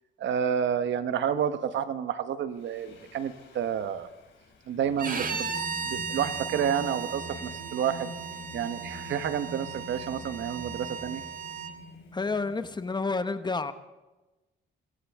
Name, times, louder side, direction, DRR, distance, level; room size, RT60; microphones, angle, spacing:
voice 1, 0.2-4.1 4.7-5.5 5.9-8.1 8.5-11.2, right 8 dB, 70° right, 11 dB, 1.1 m, -30 dB
Singing, 2.6-13.0, left 1 dB, 70° left, 3.5 m, -45 dB
Bowed string instrument, 5.0-11.7, right 6 dB, 45° right, 1.5 m, -36 dB
voice 2, 12.1-13.7, left 3 dB, 20° left, 11 dB, 0.9 m, -29 dB
25.5 x 15.5 x 3.6 m, 1.1 s
cardioid pair, 90°, 20 cm